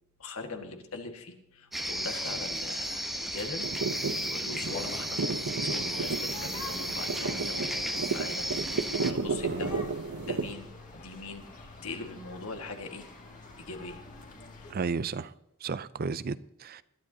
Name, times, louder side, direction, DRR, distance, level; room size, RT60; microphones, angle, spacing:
voice 1, 0.2-3.7 4.0-5.2 5.6-8.5 9.0-9.9 10.2-11.5 11.8-13.1 13.6-14.0 14.5-14.8, left 3 dB, 75° left, 1.8 m, -41 dB
sound 1, 1.7-9.1, equal, ahead, 0.9 m, -34 dB
sound 2, 3.6-10.5, right 4 dB, 90° right, 0.8 m, -33 dB
sound 3, 4.6-14.7, left 2 dB, 40° left, 2.3 m, -47 dB
voice 2, 14.7-15.3 15.6-16.8, right 4 dB, 45° right, 0.5 m, -33 dB
20.5 x 12.5 x 2.8 m
head